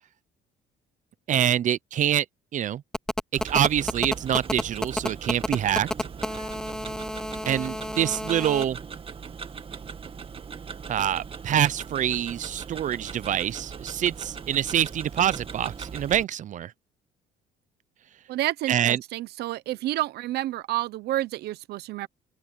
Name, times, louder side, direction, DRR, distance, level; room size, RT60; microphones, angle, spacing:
voice 1, 1.3-2.3 2.5-2.8 3.3-5.9 7.5-8.8 10.9-16.7 18.7-19.0, right 10 dB, 50° right, 0.7 m, -25 dB
Telephone, 2.9-8.6, left 1 dB, 5° left, 0.8 m, -30 dB
Tick-tock, 3.4-16.2, right 6 dB, 35° right, 2.0 m, -40 dB
voice 2, 18.3-22.1, right 15 dB, 75° right, 0.9 m, -29 dB
cardioid pair, 110°, 17 cm